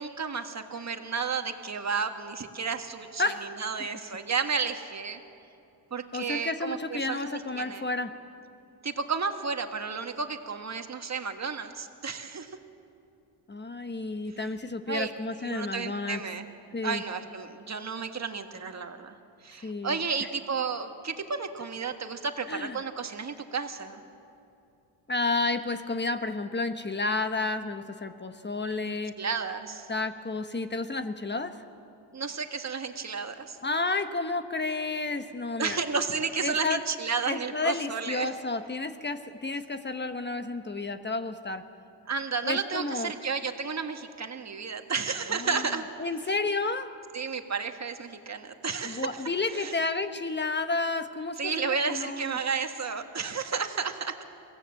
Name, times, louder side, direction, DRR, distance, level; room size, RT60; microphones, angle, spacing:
voice 1, 0.0-5.2 5.9-7.8 8.8-12.6 14.9-15.1 15.4-16.5 16.8-19.1 19.4-24.0 28.9-29.9 32.1-33.6 35.6-38.3 42.1-45.8 47.1-49.2 49.5-49.7 51.4-54.2, right 5 dB, 35° right, 6 dB, 1.7 m, -32 dB
voice 2, 6.1-8.1 13.5-16.2 16.7-17.0 19.6-20.3 22.5-22.8 25.1-29.1 29.9-31.6 33.6-35.8 36.4-36.8 37.3-41.6 42.4-43.1 45.4-45.7 46.0-46.9 48.8-52.4, left 3 dB, 25° left, 9 dB, 1.1 m, -31 dB
23.0 x 16.0 x 7.7 m, 2.7 s
supercardioid pair, 70°, 45 cm